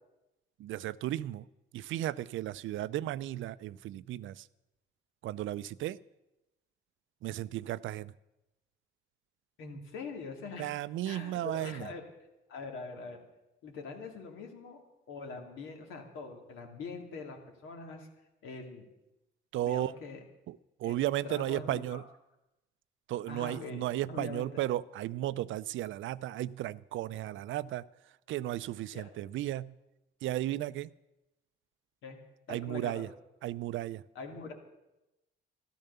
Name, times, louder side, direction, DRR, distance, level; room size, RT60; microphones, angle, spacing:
voice 1, 0.6-1.4 1.7-4.5 5.2-6.0 7.2-8.1 10.6-11.9 19.5-19.9 20.5-22.0 23.1-27.8 28.3-29.7 30.2-30.9 32.5-33.1 33.4-34.0, right 14 dB, 75° right, 18 dB, 0.5 m, -34 dB
voice 2, 9.6-10.7 11.0-12.0 12.5-13.2 13.6-14.8 15.1-18.1 18.4-18.9 19.6-20.2 20.8-22.0 23.3-24.6 28.9-29.1 32.0-32.2 32.5-33.0 34.1-34.5, left 4 dB, 85° left, 3 dB, 2.5 m, -43 dB
13.5 x 12.5 x 6.8 m, 0.95 s
cardioid pair, 90°, 20 cm